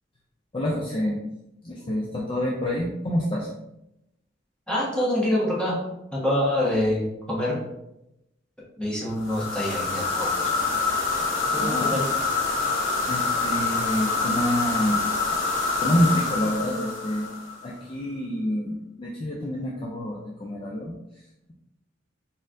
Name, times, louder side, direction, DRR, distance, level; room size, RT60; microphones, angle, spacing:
voice 1, 0.5-1.2 1.6-3.5 11.6-12.0 13.1-15.0 15.8-17.3 17.6-20.9, equal, 30° left, -2 dB, 0.4 m, -27 dB
voice 2, 4.7-5.8 6.1-7.6 8.8-10.8 11.5-12.1, left 1 dB, 5° left, -7 dB, 1.2 m, -26 dB
sound 1, 9.2-17.7, left 4 dB, 85° left, 1.4 m, -26 dB
4.1 x 3.7 x 2.6 m, 0.86 s
head